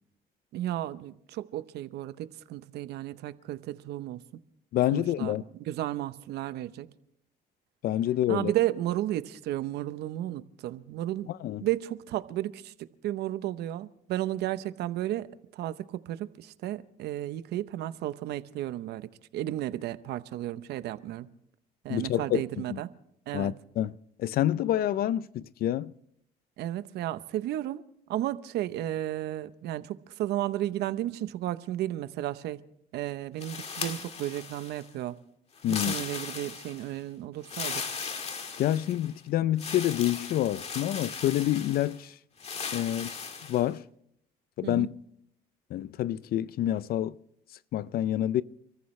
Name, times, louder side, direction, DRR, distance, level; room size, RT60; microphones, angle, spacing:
voice 1, 0.5-4.2 4.9-5.3 5.6-6.9 8.3-11.3 11.6-12.7 13.0-21.3 21.8-22.9 23.3-23.5 26.6-27.8 28.1-32.6 32.9-35.2 35.9-37.8 44.6-44.9, right 13 dB, 75° right, 0.8 m, -33 dB
voice 2, 4.7-5.4 7.8-8.5 11.4-11.6 21.9-22.4 22.7-22.8 23.3-25.9 35.6-35.9 38.6-42.1 42.7-43.1 43.5-43.8 44.6-44.9 45.7-47.2 47.7-48.4, left 12 dB, 60° left, 0.5 m, -27 dB
sound 1, 33.4-34.9 35.6-36.9 37.4-39.1 39.6-42.0 42.4-43.7, left 5 dB, 40° left, 1.8 m, -37 dB
30.0 x 14.0 x 3.2 m
cardioid pair, 110°, 17 cm